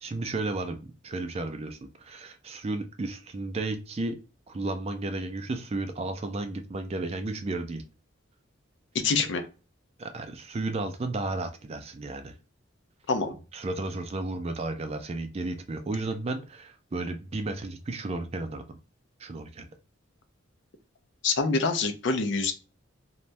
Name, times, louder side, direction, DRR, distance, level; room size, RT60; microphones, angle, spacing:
voice 1, 0.0-4.2 4.5-7.8 9.2-9.3 10.0-12.3 13.5-18.8 19.2-19.7, right 2 dB, 30° right, 7 dB, 0.4 m, -33 dB
voice 2, 9.0-9.4 13.1-13.3 21.2-22.5, left 4 dB, 60° left, 8 dB, 0.5 m, -25 dB
3.2 x 2.2 x 2.5 m, 0.34 s
head